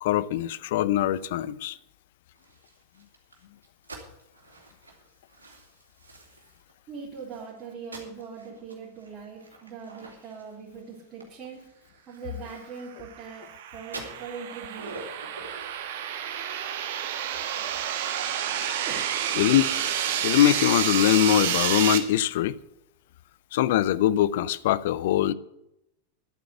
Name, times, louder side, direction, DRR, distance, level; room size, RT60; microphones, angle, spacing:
voice 1, 0.0-1.8 19.4-19.7 20.2-22.6 23.5-25.3, left 12 dB, 55° left, 0.5 m, -22 dB
sound 1, 2.3-6.7 7.2-13.5 13.8-15.7, right 2 dB, 75° right, 2.9 m, -47 dB
voice 2, 6.9-11.6 12.1-13.5 13.7-14.9 18.8-19.2, right 5 dB, 30° right, 3.4 m, -41 dB
sound 2, 13.0-22.0, right 9 dB, 55° right, 1.4 m, -29 dB
11.0 x 8.8 x 8.1 m
figure-of-eight pair, 90°, 0 cm